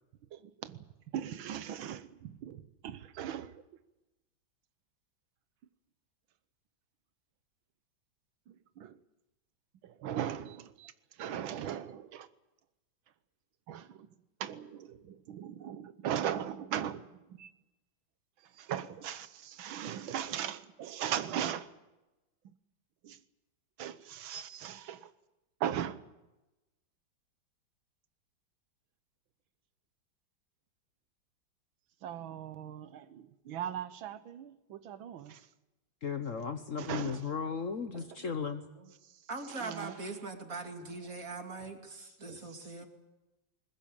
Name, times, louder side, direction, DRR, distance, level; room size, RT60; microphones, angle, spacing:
voice 1, 0.3-0.8 1.1-3.6 8.5-9.0 9.8-12.3 13.7-14.1 14.4-17.5 18.4-21.7 23.0-23.2 23.8-25.1 25.6-26.1 32.0-35.5 36.8-37.2 37.9-38.1 39.0-39.2 39.5-40.0 42.3-42.4 42.8-42.9, right 10 dB, 85° right, 1.8 m, -39 dB
voice 2, 36.0-38.6, left 6 dB, 45° left, 1.3 m, -35 dB
voice 3, 39.3-42.9, right 3 dB, 45° right, 3.1 m, -41 dB
21.0 x 20.0 x 8.9 m
omnidirectional pair, 2.1 m